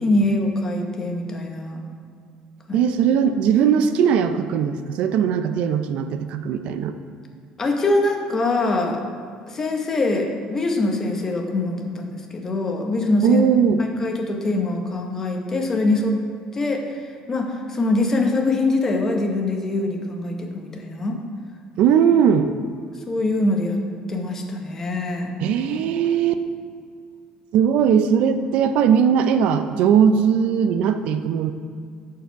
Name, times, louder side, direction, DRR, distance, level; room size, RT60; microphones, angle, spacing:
voice 1, 0.0-1.8 2.7-2.8 7.6-9.0 9.5-13.4 13.8-16.2 16.5-21.2 23.1-23.8 24.1-25.3, left 2 dB, 20° left, 3 dB, 0.9 m, -23 dB
voice 2, 2.7-7.0 13.2-13.8 21.8-22.5 25.4-26.4 27.5-31.5, right 7 dB, 60° right, 9 dB, 0.4 m, -19 dB
11.0 x 4.8 x 4.6 m, 2.2 s
cardioid pair, 160°, 2 cm